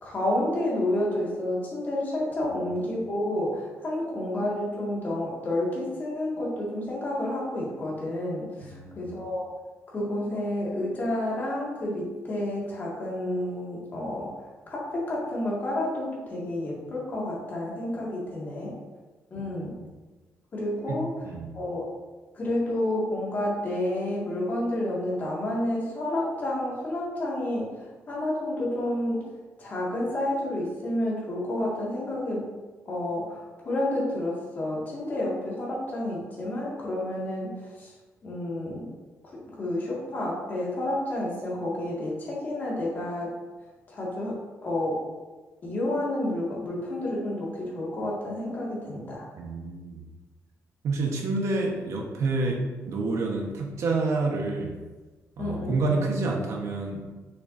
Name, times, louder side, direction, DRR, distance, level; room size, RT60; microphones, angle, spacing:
voice 1, 0.0-9.5 9.9-14.3 14.7-18.7 19.3-19.8 20.5-21.1 21.5-21.8 22.3-27.7 28.1-29.3 29.6-32.5 32.9-37.5 37.8-37.9 38.2-38.9 39.6-43.3 43.9-44.4 44.6-45.0 45.6-49.2 55.4-56.0, left 1 dB, 35° left, -5 dB, 2.0 m, -30 dB
voice 2, 8.6-9.1 19.3-19.9 20.9-21.5 49.4-50.0 50.8-54.8 55.4-57.1, right 3 dB, 60° right, 1 dB, 1.2 m, -29 dB
6.6 x 6.2 x 2.7 m, 1.3 s
wide cardioid pair, 170°, 6 cm